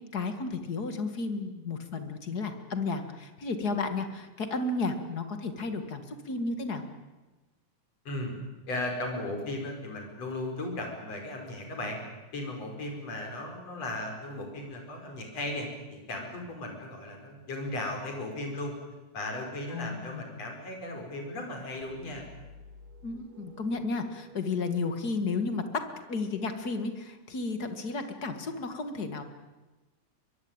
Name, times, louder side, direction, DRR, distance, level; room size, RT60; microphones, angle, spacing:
voice 1, 0.1-6.8 19.7-20.2 23.0-25.8 26.1-29.2, left 3 dB, 35° left, 8 dB, 2.0 m, -33 dB
voice 2, 8.7-12.0 12.3-18.7 19.1-22.3, left 1 dB, 50° left, 3 dB, 6.1 m, -36 dB
sound 1, 21.8-26.5, equal, 70° right, 4.7 m, -53 dB
23.0 x 23.0 x 8.9 m, 1.2 s
omnidirectional pair, 3.7 m